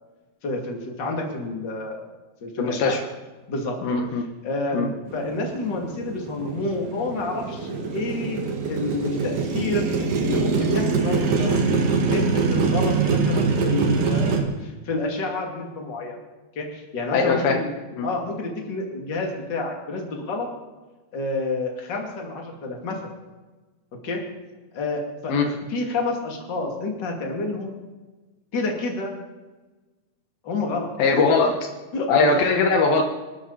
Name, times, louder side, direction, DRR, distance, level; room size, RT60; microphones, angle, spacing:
voice 1, 0.4-2.0 2.4-3.0 3.5-3.8 4.4-8.4 8.7-9.9 10.2-16.2 16.5-17.7 18.0-20.5 21.1-23.0 24.0-24.2 24.7-27.8 28.5-29.1 30.4-30.9 31.9-32.4, left 2 dB, 30° left, 1 dB, 2.8 m, -29 dB
voice 2, 2.6-3.0 3.8-4.3 4.7-4.9 17.1-17.6 17.9-18.1 25.3-25.5 31.0-31.5 32.1-33.0, left 4 dB, 75° left, 3 dB, 3.0 m, -20 dB
Motorcycle, 5.1-14.4, right 4 dB, 60° right, 3.3 m, -24 dB
26.5 x 12.5 x 4.2 m, 1.2 s
omnidirectional pair, 4.4 m